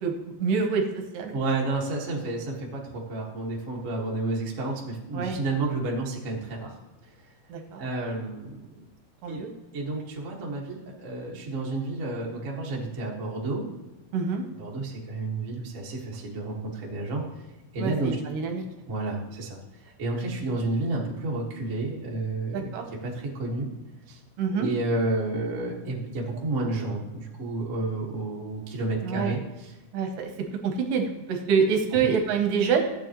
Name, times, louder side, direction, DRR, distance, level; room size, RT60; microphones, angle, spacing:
voice 1, 0.0-0.8 1.1-1.4 5.1-5.4 7.5-7.8 9.2-9.5 14.1-14.4 17.8-18.6 22.5-22.8 24.4-24.7 29.0-29.4 29.9-30.3 30.6-32.8, right 6 dB, 70° right, 4 dB, 2.3 m, -26 dB
voice 2, 1.3-6.8 7.8-8.6 9.3-9.4 9.7-13.7 14.6-17.2 17.7-18.2 18.9-22.7 23.0-23.7 24.1-24.2 24.5-29.7, right 2 dB, 45° right, -3 dB, 1.0 m, -31 dB
14.5 x 8.4 x 3.0 m, 1.1 s
omnidirectional pair, 4.3 m